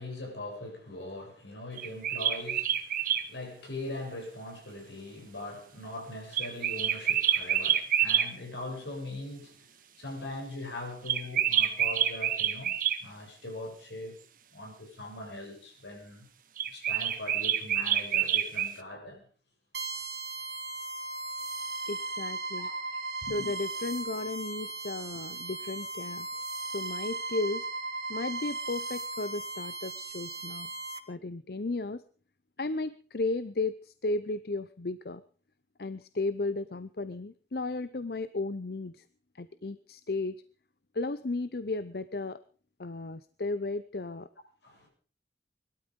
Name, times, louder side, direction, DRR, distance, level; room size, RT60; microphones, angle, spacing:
voice 1, 0.0-9.7 10.0-14.2 14.5-16.3 16.7-19.2 22.6-23.0 23.3-23.5 44.6-44.9, left 2 dB, 80° left, 8.0 m, -41 dB
sound 1, 1.8-3.2 6.3-8.3 11.1-13.0 16.6-18.7, right 10 dB, 50° right, 1.5 m, -27 dB
sound 2, 19.7-31.0, right 3 dB, 70° right, 2.4 m, -37 dB
voice 2, 21.9-22.7 23.3-26.3 26.7-27.7 28.1-30.7 31.1-32.0 32.6-35.2 35.8-39.0 39.3-40.4 40.9-42.4 42.8-44.3, left 3 dB, 55° left, 0.7 m, -34 dB
21.5 x 12.5 x 5.2 m
head